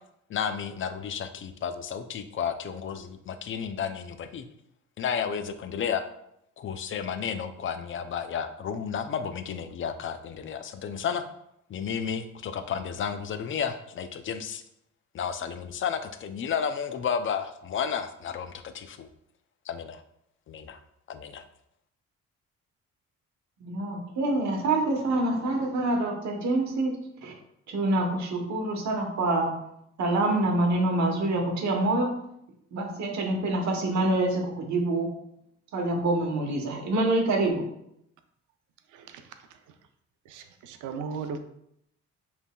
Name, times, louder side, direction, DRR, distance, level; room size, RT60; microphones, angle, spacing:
voice 1, 0.3-4.5 5.0-6.1 6.6-11.2 11.7-14.6 15.1-19.1 19.7-20.0 20.5-20.8 21.1-21.4, left 7 dB, 40° left, 9 dB, 0.5 m, -32 dB
voice 2, 23.6-26.9 27.2-27.3 27.7-29.6 30.0-32.1 32.7-35.1 35.7-37.7, right 2 dB, 65° right, 1 dB, 1.1 m, -26 dB
voice 3, 40.3-41.4, right 5 dB, 90° right, 7 dB, 0.5 m, -36 dB
5.3 x 3.4 x 2.2 m, 0.75 s
cardioid pair, 90°, 30 cm